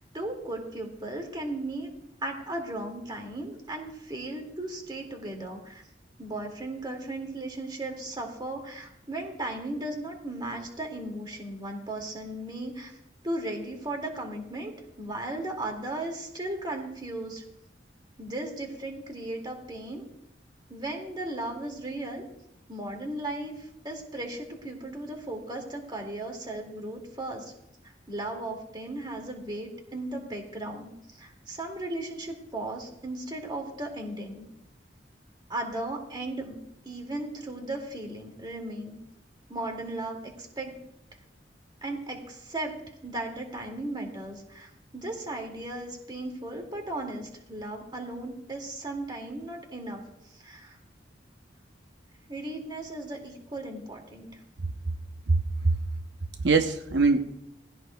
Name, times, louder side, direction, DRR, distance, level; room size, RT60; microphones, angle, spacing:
voice 1, 0.1-1.9 2.2-5.8 6.2-13.0 13.2-17.4 18.2-20.0 20.7-22.2 22.7-27.5 28.1-34.4 35.5-36.6 36.8-39.0 39.5-40.8 41.8-42.7 43.0-50.0 50.3-50.8 52.3-54.4, right 1 dB, 25° right, 1 dB, 2.3 m, -36 dB
voice 2, 55.3-55.8 56.4-57.2, right 3 dB, 75° right, 6 dB, 0.8 m, -22 dB
19.0 x 16.0 x 2.3 m, 0.80 s
head